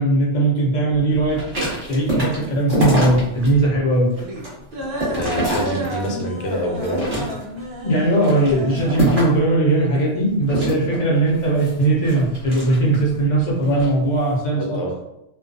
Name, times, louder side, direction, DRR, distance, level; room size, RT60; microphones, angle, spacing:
voice 1, 0.0-1.4 1.9-4.1 7.8-14.8, right 2 dB, 45° left, -5 dB, 0.6 m, -19 dB
sound 1, 0.9-10.9, equal, 60° right, 0.6 m, -33 dB
sound 2, 1.3-3.5 3.9-6.3 6.7-7.6 8.1-9.5 10.5-13.1 13.6-13.9, right 1 dB, 30° right, 0.9 m, -25 dB
voice 2, 5.1-7.3 14.6-14.9, equal, 75° left, 1 dB, 0.9 m, -26 dB
2.3 x 2.3 x 2.5 m, 0.84 s
omnidirectional pair, 1.3 m